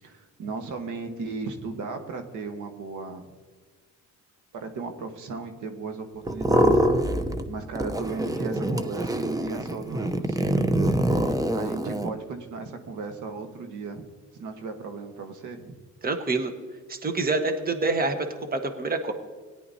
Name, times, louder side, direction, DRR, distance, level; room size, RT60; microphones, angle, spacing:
voice 1, 0.0-3.2 4.5-6.8 7.5-10.7 11.2-14.1 14.3-15.7, right 4 dB, 80° right, 5 dB, 1.4 m, -36 dB
sound 1, 6.3-7.5 7.7-12.1, right 1 dB, 10° right, 0.7 m, -25 dB
voice 2, 16.0-16.5 16.9-18.2 18.5-19.1, right 3 dB, 30° right, 6 dB, 1.3 m, -26 dB
17.5 x 11.0 x 2.8 m, 1.4 s
cardioid pair, 90°, 30 cm